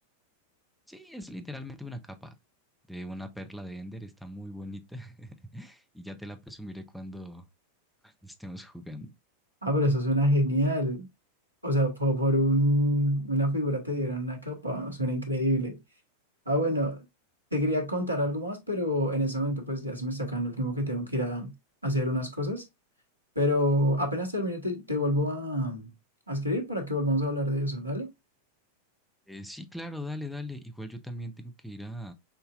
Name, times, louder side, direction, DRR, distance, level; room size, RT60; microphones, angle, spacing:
voice 1, 0.9-2.3 2.9-7.5 8.0-9.1 29.3-32.1, equal, ahead, 0.7 m, -40 dB
voice 2, 9.6-11.1 11.6-15.8 16.5-17.0 17.5-21.5 21.8-22.6 23.3-25.9 26.3-28.1, equal, 85° right, 1.3 m, -27 dB
5.8 x 2.7 x 2.5 m
figure-of-eight pair, 90°, 0 cm